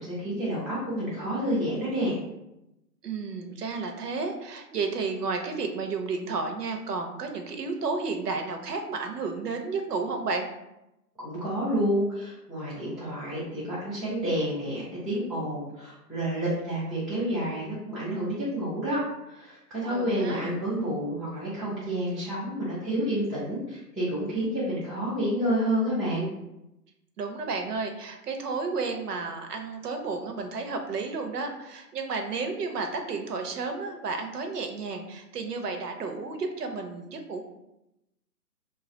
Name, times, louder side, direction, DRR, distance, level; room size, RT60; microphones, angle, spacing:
voice 1, 0.0-2.2 11.2-19.0 19.3-26.3, equal, ahead, -12 dB, 0.3 m, -29 dB
voice 2, 3.0-10.5 19.9-20.4 27.2-37.4, right 4 dB, 70° right, 5 dB, 0.7 m, -32 dB
2.7 x 2.4 x 3.8 m, 0.89 s
hypercardioid pair, 150°, 50 cm